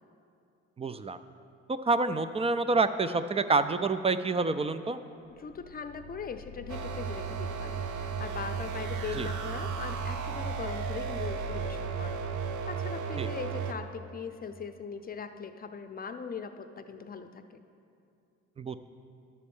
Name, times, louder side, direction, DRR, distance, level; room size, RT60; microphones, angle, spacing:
voice 1, 0.8-1.2 1.7-5.0 9.2-9.3 13.2-13.3 18.6-18.8, right 3 dB, 20° right, 11 dB, 0.3 m, -27 dB
sound 1, 5.3-13.0, left 7 dB, 85° left, 0.5 m, -45 dB
voice 2, 5.3-12.2 12.7-17.6, left 6 dB, 30° left, 8 dB, 0.6 m, -40 dB
sound 2, 6.7-13.7, right 7 dB, 75° right, 0.6 m, -34 dB
11.0 x 4.2 x 7.1 m, 2.5 s
cardioid pair, 90°, 30 cm